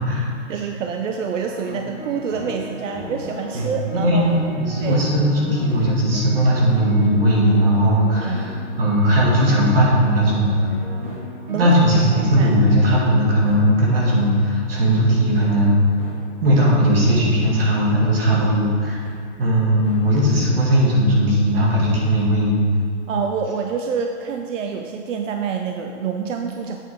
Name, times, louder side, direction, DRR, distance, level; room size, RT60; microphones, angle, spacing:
voice 1, 0.5-4.4 4.8-5.0 8.2-8.6 11.5-11.7 12.4-12.5 23.1-26.8, right 6 dB, 85° right, 4 dB, 0.7 m, -27 dB
sound 1, 1.3-12.9 13.4-13.6 14.1-14.2 14.7-14.8 15.3-15.5 16.0-16.1 16.7-16.8 17.5-17.6 18.2-18.4 19.0-19.1 19.8-20.0, left 1 dB, 15° right, 0.6 m, -36 dB
voice 2, 3.5-10.6 11.5-15.8 16.4-19.0 19.4-22.6, equal, 50° right, -4 dB, 2.1 m, -18 dB
8.3 x 7.2 x 3.6 m, 2.3 s
hypercardioid pair, 180°, 37 cm